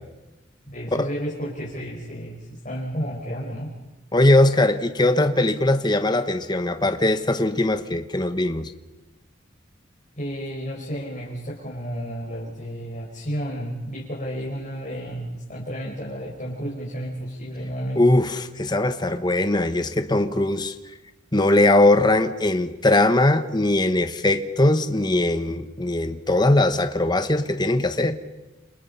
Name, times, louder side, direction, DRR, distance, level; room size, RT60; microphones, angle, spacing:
voice 1, 0.7-3.7 10.2-18.0, equal, 40° left, -5 dB, 5.4 m, -32 dB
voice 2, 4.1-8.7 17.9-20.7 21.3-28.1, left 2 dB, 20° left, 9 dB, 1.1 m, -20 dB
29.5 x 27.5 x 5.7 m, 1.0 s
head